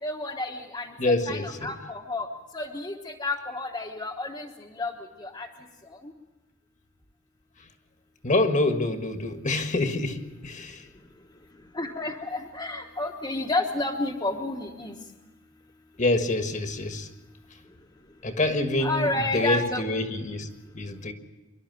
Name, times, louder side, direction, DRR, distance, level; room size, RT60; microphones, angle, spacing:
voice 1, 0.0-2.3 2.5-4.9 5.2-5.5 5.9-6.1 11.7-14.9 18.8-19.8, left 2 dB, 20° left, 1.2 m, -31 dB
voice 2, 1.0-1.7 7.6-7.7 8.2-10.9 16.0-17.1 18.2-21.1, left 2 dB, 40° left, 1.5 m, -26 dB
25.0 x 12.0 x 9.3 m
head